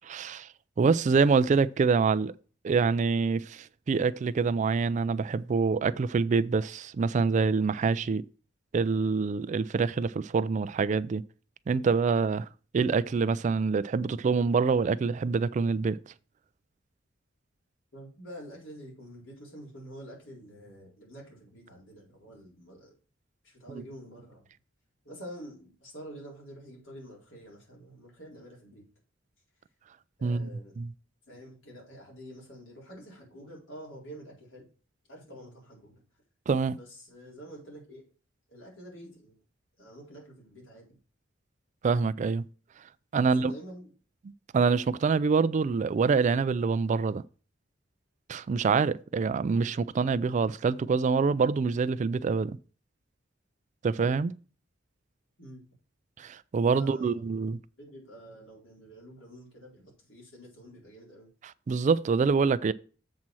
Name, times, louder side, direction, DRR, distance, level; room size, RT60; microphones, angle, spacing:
voice 1, 0.0-0.5 0.8-2.3 2.6-8.2 8.7-11.2 11.7-12.5 12.7-16.0 30.2-30.5 30.8-30.9 36.5-36.8 41.8-42.4 43.1-43.5 44.5-47.2 48.3-52.6 53.8-54.3 56.2-57.6 61.7-62.7, right 5 dB, 40° right, 0.3 m, -25 dB
voice 2, 17.9-22.9 23.4-24.4 25.0-28.8 30.2-30.7 31.3-34.6 35.1-36.0 36.7-38.0 38.5-39.4 39.8-41.0 43.2-43.9 55.4-55.6 56.7-57.2 57.8-61.3, equal, 85° left, 4.1 m, -47 dB
7.4 x 4.2 x 6.1 m
head